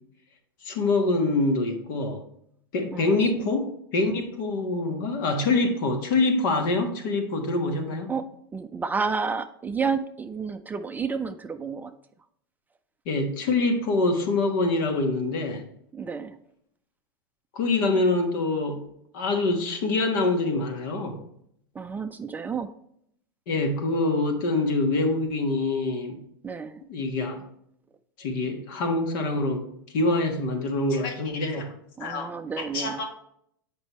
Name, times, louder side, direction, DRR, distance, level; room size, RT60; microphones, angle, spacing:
voice 1, 0.6-2.2 2.7-8.1 13.0-15.6 17.5-18.9 19.1-21.2 23.5-26.2 26.9-27.4 28.2-29.6 29.9-31.7 32.0-32.3 32.6-33.1, left 2 dB, 60° left, 4 dB, 1.4 m, -25 dB
voice 2, 2.9-3.5 8.1-8.3 8.5-11.9 15.9-16.4 21.7-22.7 26.4-26.8 32.0-33.0, right 5 dB, 15° right, 8 dB, 0.4 m, -31 dB
7.9 x 5.3 x 3.1 m, 0.72 s
hypercardioid pair, 100°, 12 cm